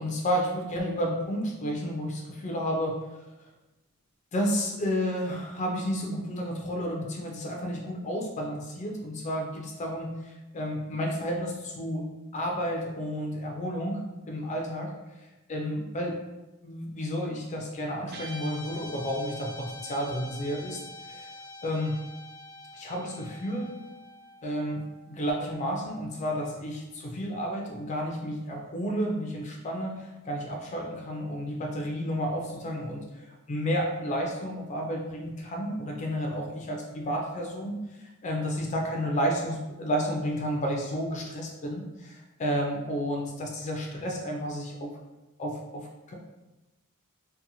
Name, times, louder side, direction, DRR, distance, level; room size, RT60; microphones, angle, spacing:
voice 1, 0.0-3.1 4.3-12.1 12.3-16.2 16.6-21.3 21.6-22.0 22.7-23.8 24.4-45.0 45.4-46.1, equal, 35° left, 0 dB, 0.3 m, -31 dB
Guitar, 18.1-26.6, left 1 dB, 50° right, 0.5 m, -46 dB
2.7 x 2.0 x 2.6 m, 1.0 s
head